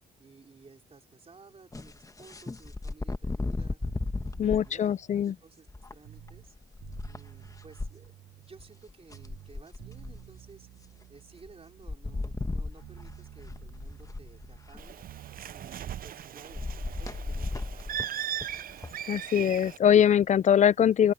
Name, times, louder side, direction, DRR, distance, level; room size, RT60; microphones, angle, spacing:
voice 1, 0.2-3.8 4.4-6.6 7.1-10.7 11.1-15.0 15.5-17.9, right 4 dB, 30° right, 4.0 m, -55 dB
sound 1, 1.7-4.7 5.7-7.9 8.6-8.7 8.9-10.4 11.4-11.5 11.8-15.0 16.5-18.9, left 3 dB, 15° left, 1.2 m, -35 dB
sound 2, 3.8-6.5 6.8-8.9 9.1-12.5 12.8-15.4, right 14 dB, 85° right, 5.2 m, -51 dB
voice 2, 4.4-5.3 19.1-21.1, left 9 dB, 35° left, 0.4 m, -22 dB
Bird, 14.8-19.8, right 10 dB, 45° right, 0.4 m, -38 dB
open air
cardioid pair, 90°, 20 cm